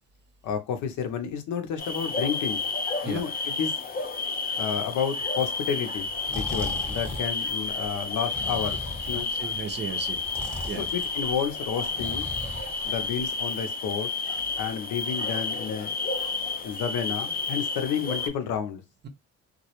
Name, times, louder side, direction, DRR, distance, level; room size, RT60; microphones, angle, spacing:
voice 1, 0.4-2.6 3.0-3.7 4.5-8.8 9.1-9.3 10.9-12.3 12.8-14.1 14.6-15.9 16.6-18.8, left 7 dB, 80° left, 0.6 m, -31 dB
sound 1, 1.8-18.3, left 4 dB, 30° left, 0.5 m, -31 dB
Breathing, 6.1-13.4, left 1 dB, 5° left, 0.8 m, -38 dB
voice 2, 9.1-10.2 10.7-10.9, right 6 dB, 35° right, 0.5 m, -35 dB
2.2 x 2.0 x 2.9 m
cardioid pair, 90°, 30 cm